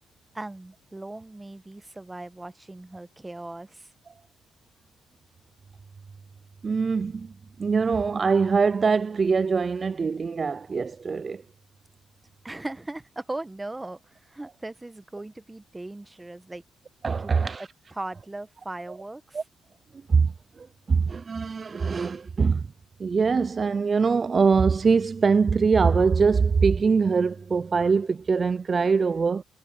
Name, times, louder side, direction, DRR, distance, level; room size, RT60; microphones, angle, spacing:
voice 1, 0.3-3.9 12.4-16.6 17.2-17.5 17.9-19.4, right 2 dB, 15° right, 1.2 m, -38 dB
voice 2, 6.6-7.3 7.6-11.4 17.0-17.7 19.3-19.4 20.1-22.7 23.0-29.4, right 5 dB, 35° right, 0.3 m, -23 dB
cardioid pair, 90°, 0 cm